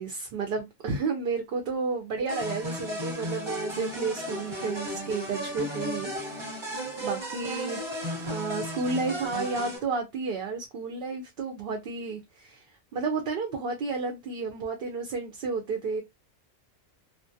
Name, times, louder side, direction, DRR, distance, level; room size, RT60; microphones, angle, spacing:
voice 1, 0.0-6.7 7.0-7.8 8.2-12.6 12.9-16.0, right 4 dB, 60° right, 0.6 m, -32 dB
sound 1, 2.3-9.8, equal, 25° right, 0.8 m, -34 dB
2.3 x 2.1 x 2.6 m
omnidirectional pair, 1.3 m